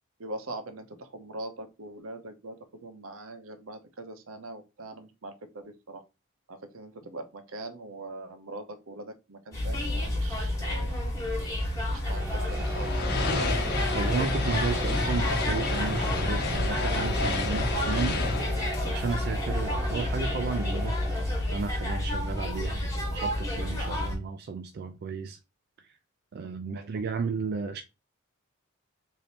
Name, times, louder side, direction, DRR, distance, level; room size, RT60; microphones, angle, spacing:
voice 1, 0.2-6.0 6.5-10.9 11.9-13.5 22.6-22.8 26.4-27.0, right 2 dB, 75° right, 0.8 m, -42 dB
sound 1, 9.5-24.2, left 1 dB, 15° left, 1.3 m, -30 dB
sound 2, 12.0-23.9, right 1 dB, 10° right, 1.0 m, -39 dB
sound 3, 12.5-19.9, left 3 dB, 50° left, 0.9 m, -31 dB
voice 2, 13.9-18.2 18.8-21.0 21.5-25.4 25.8-26.0 26.3-27.8, right 4 dB, 50° right, 0.3 m, -33 dB
3.3 x 2.7 x 4.1 m
head